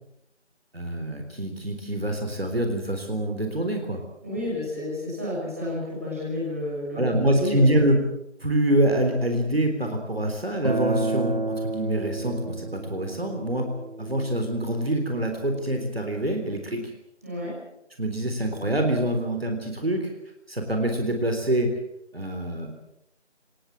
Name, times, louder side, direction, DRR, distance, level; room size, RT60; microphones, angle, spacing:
voice 1, 0.7-4.0 7.0-8.1 8.4-13.7 14.0-16.9 18.0-20.1 20.5-21.8 22.1-22.7, right 1 dB, 55° right, 4 dB, 3.8 m, -25 dB
voice 2, 4.2-7.7 17.2-17.6, left 1 dB, 15° right, -7 dB, 6.4 m, -31 dB
Acoustic guitar, 10.6-15.8, right 2 dB, 35° right, 3.2 m, -31 dB
24.5 x 18.5 x 7.7 m, 0.81 s
figure-of-eight pair, 180°, 35 cm